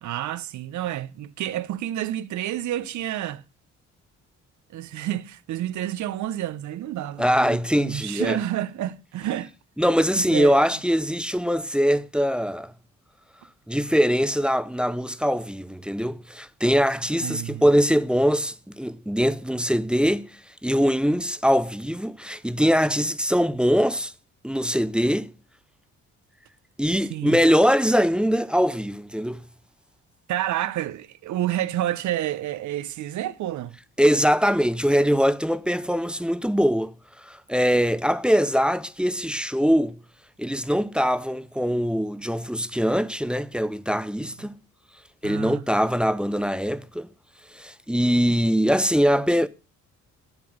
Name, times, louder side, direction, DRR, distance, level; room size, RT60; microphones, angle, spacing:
voice 1, 0.0-3.4 4.7-9.5 10.2-10.7 17.2-17.7 27.0-27.4 30.3-33.8 44.2-44.5 45.2-45.6, right 12 dB, 70° right, 0.7 m, -29 dB
voice 2, 7.2-8.4 9.8-12.7 13.7-24.1 24.4-25.3 26.8-29.4 34.0-36.9 37.2-40.0 40.4-44.5 45.2-47.1 47.5-49.5, equal, 5° right, 0.5 m, -22 dB
7.8 x 7.2 x 6.4 m
cardioid pair, 90°, 30 cm